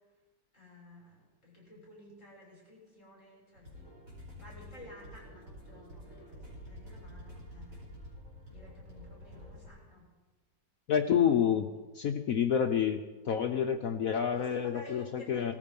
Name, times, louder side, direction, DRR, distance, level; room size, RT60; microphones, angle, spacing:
voice 1, 0.5-3.9 4.4-7.8 8.5-10.1 14.4-15.5, left 1 dB, 40° left, -3 dB, 7.0 m, -53 dB
sound 1, 3.5-9.7, equal, 45° right, 5.5 m, -49 dB
voice 2, 10.9-11.7 11.9-13.0 13.3-15.5, left 8 dB, 60° left, 6 dB, 0.9 m, -28 dB
18.5 x 14.0 x 5.4 m, 1.3 s
omnidirectional pair, 2.0 m